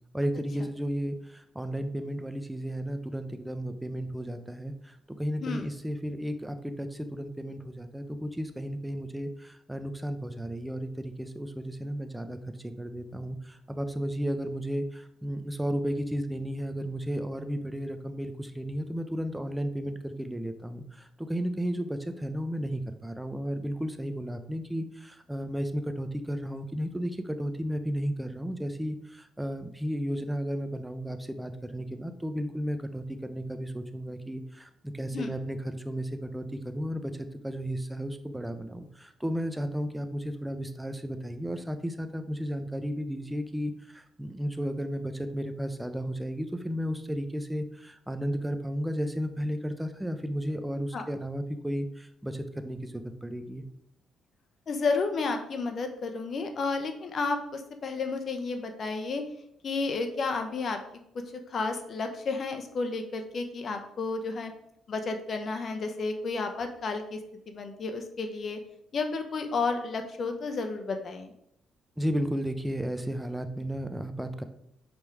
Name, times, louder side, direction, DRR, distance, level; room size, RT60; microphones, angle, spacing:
voice 1, 0.1-53.6 72.0-74.4, equal, 5° right, 8 dB, 0.7 m, -33 dB
voice 2, 54.7-59.2 59.6-60.8 61.1-64.5 64.9-67.2 67.5-68.6 68.9-71.3, left 4 dB, 50° left, 5 dB, 1.0 m, -31 dB
5.4 x 5.0 x 4.7 m, 0.74 s
cardioid pair, 90°, 0 cm